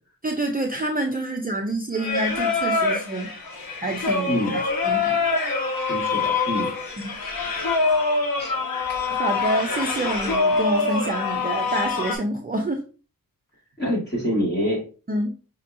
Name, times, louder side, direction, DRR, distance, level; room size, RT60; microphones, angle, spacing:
voice 1, 0.2-3.3 3.8-5.2 7.0-7.1 9.1-12.8 15.1-15.3, right 1 dB, 25° right, 2 dB, 0.5 m, -27 dB
Singing, 2.0-12.2, left 4 dB, 80° left, 1.0 m, -25 dB
voice 2, 4.3-4.6 5.9-6.7 7.1-7.3 8.4-8.6 13.8-14.8, equal, 30° left, -5 dB, 2.1 m, -26 dB
5.2 x 2.9 x 2.5 m, 0.36 s
wide cardioid pair, 130°, 35 cm